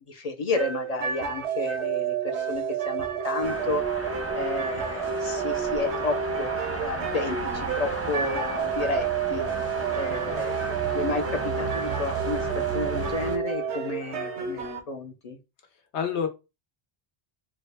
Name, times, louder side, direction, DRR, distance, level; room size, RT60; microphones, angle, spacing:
voice 1, 0.1-3.8 4.3-9.4 9.9-10.5 10.9-12.5 12.7-15.4, left 3 dB, 55° left, 6 dB, 0.4 m, -31 dB
sound 1, 0.5-14.8, right 7 dB, 85° right, 0.9 m, -30 dB
sound 2, 3.4-13.4, right 3 dB, 20° right, 0.5 m, -34 dB
voice 2, 10.1-10.4 15.9-16.3, left 7 dB, 85° left, 5 dB, 1.1 m, -29 dB
3.5 x 2.2 x 3.2 m, 0.27 s
omnidirectional pair, 1.1 m